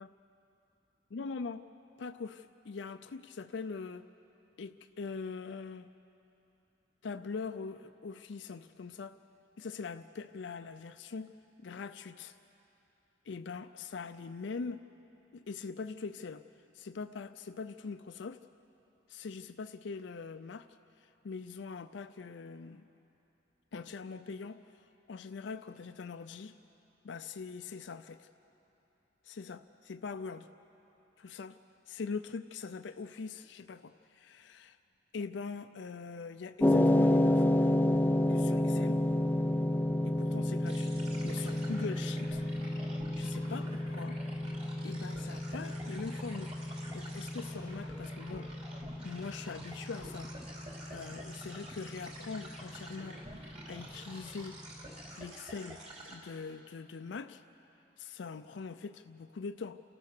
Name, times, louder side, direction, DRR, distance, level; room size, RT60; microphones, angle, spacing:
voice 1, 1.1-1.6 2.0-4.1 4.6-5.9 7.0-9.2 9.6-12.4 13.3-14.8 15.3-16.4 16.7-18.4 19.1-20.7 21.0-22.9 23.7-26.6 27.0-28.3 29.2-30.5 31.2-31.6 31.9-34.8 35.1-37.8 38.3-39.0 40.0-41.0 41.2-42.4 43.1-44.2 44.8-46.6 46.9-48.5 49.0-50.3 50.9-53.2 53.7-54.6 55.2-57.4 58.0-59.8, left 4 dB, 70° left, 9 dB, 0.5 m, -42 dB
sound 1, 36.6-54.9, left 1 dB, 10° left, 0.5 m, -31 dB
sound 2, 40.7-56.2, right 1 dB, 35° right, 3.0 m, -49 dB
29.0 x 14.0 x 6.7 m, 3.0 s
head